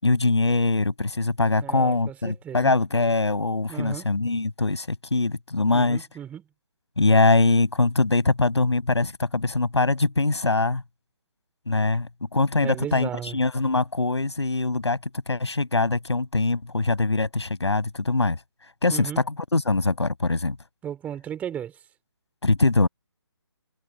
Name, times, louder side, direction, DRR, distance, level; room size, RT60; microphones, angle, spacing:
voice 1, 0.0-6.1 7.0-10.8 11.7-15.0 15.3-18.4 18.8-20.6 22.4-22.9, left 3 dB, 85° left, 6.1 m, -23 dB
voice 2, 1.6-2.7 3.7-4.1 5.7-6.4 12.6-13.4 18.9-19.2 20.8-21.8, right 9 dB, 10° right, 3.9 m, -35 dB
figure-of-eight pair, 150°, 14 cm